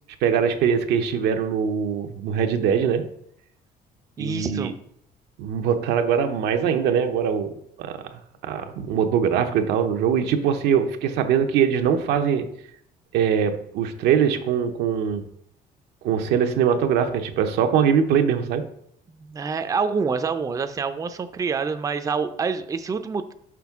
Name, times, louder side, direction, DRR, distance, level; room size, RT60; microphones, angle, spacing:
voice 1, 0.2-3.1 4.2-4.7 5.4-8.1 8.4-12.5 13.1-15.3 16.0-18.6, right 7 dB, 80° right, 6 dB, 0.7 m, -22 dB
voice 2, 4.2-4.7 19.1-23.3, right 5 dB, 20° right, 9 dB, 0.4 m, -27 dB
6.0 x 5.2 x 3.5 m, 0.70 s
cardioid pair, 110°, 17 cm